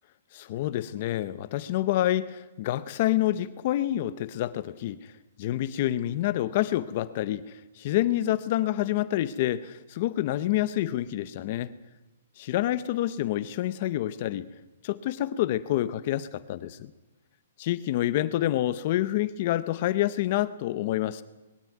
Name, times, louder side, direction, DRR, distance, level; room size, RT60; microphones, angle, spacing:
voice 1, 0.3-5.1 5.4-11.7 12.4-14.5 14.8-16.9 17.6-21.2, left 14 dB, 30° left, 14 dB, 0.7 m, -28 dB
21.5 x 16.5 x 9.3 m, 1.1 s
hypercardioid pair, 180°, 0 cm